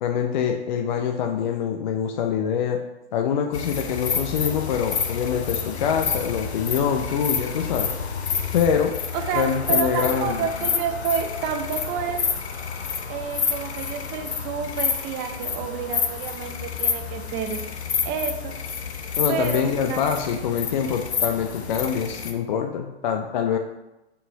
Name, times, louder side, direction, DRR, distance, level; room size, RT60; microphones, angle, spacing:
voice 1, 0.0-2.8 3.1-7.9 8.5-8.9 9.3-10.5 19.2-23.6, left 7 dB, 45° left, 3 dB, 0.6 m, -25 dB
sound 1, 3.5-22.3, left 6 dB, 70° left, 0.9 m, -29 dB
voice 2, 9.1-12.3 13.1-17.6 18.0-18.6 19.3-20.0, right 7 dB, 25° right, 6 dB, 0.6 m, -29 dB
5.5 x 4.3 x 4.6 m, 0.96 s
figure-of-eight pair, 115°, 34 cm